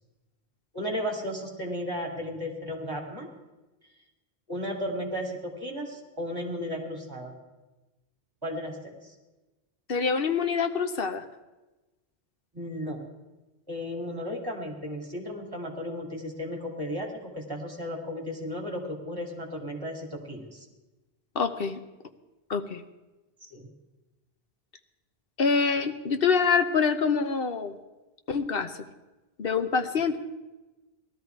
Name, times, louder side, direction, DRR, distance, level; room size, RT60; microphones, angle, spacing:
voice 1, 0.7-3.3 4.5-7.4 8.4-9.1 12.5-13.0 13.7-20.6 23.4-23.7, equal, 20° right, 0 dB, 2.8 m, -34 dB
voice 2, 9.9-11.2 21.3-21.8 22.5-22.8 25.4-27.7 28.3-28.7 29.4-30.2, left 5 dB, 60° left, 8 dB, 1.1 m, -25 dB
18.5 x 13.0 x 4.6 m, 1.1 s
omnidirectional pair, 1.1 m